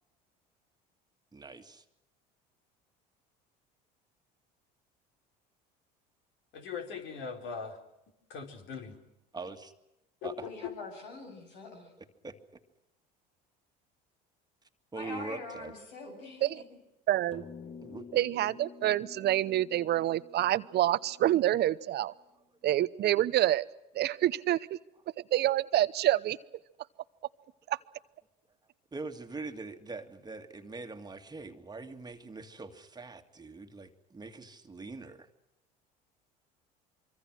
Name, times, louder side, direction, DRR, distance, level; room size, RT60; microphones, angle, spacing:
voice 1, 1.3-1.8 9.3-9.7 10.2-10.3 12.0-12.4 14.9-15.7 17.8-18.1 28.9-35.3, right 3 dB, 20° right, 6 dB, 2.0 m, -43 dB
voice 2, 6.5-7.8 8.3-9.0 10.2-10.5, left 6 dB, 60° left, 4 dB, 4.2 m, -40 dB
voice 3, 10.4-11.9 14.9-16.5, left 3 dB, 85° left, 3 dB, 7.8 m, -44 dB
voice 4, 17.1-17.4 18.1-22.1 22.6-23.7 23.9-24.8 25.3-26.4 27.7-27.8, right 13 dB, 50° right, 16 dB, 0.9 m, -27 dB
sound 1, 17.3-22.0, left 5 dB, 25° left, 1.4 m, -50 dB
25.0 x 24.0 x 6.3 m, 0.90 s
hypercardioid pair, 75°, 21 cm